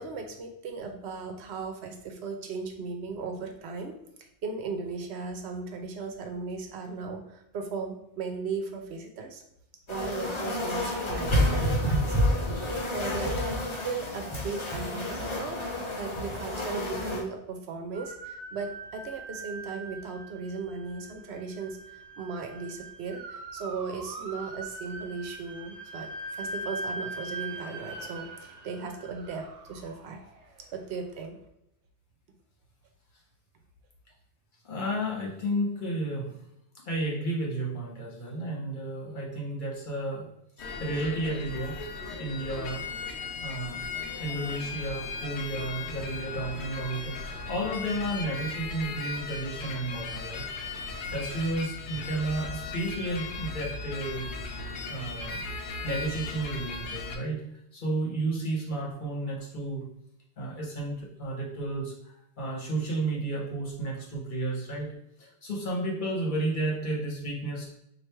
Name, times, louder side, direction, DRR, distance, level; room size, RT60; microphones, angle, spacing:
voice 1, 0.0-9.4 9.9-15.6 16.0-30.2 30.7-31.4, right 4 dB, 75° right, 4 dB, 0.9 m, -37 dB
sound 1, 9.9-17.2, left 1 dB, 30° left, 0.7 m, -29 dB
voice 2, 13.0-13.4 34.6-36.4 36.8-40.3 40.6-41.8 42.1-42.8 43.4-43.8 44.2-50.5 51.1-54.6 54.9-55.4 55.8-59.9 60.4-67.7, right 1 dB, 50° left, -3 dB, 1.1 m, -32 dB
sound 2, 17.9-31.0, right 2 dB, 50° right, 0.5 m, -41 dB
sound 3, 40.6-57.2, left 3 dB, 85° left, 0.9 m, -37 dB
3.2 x 2.5 x 4.4 m, 0.79 s
omnidirectional pair, 1.1 m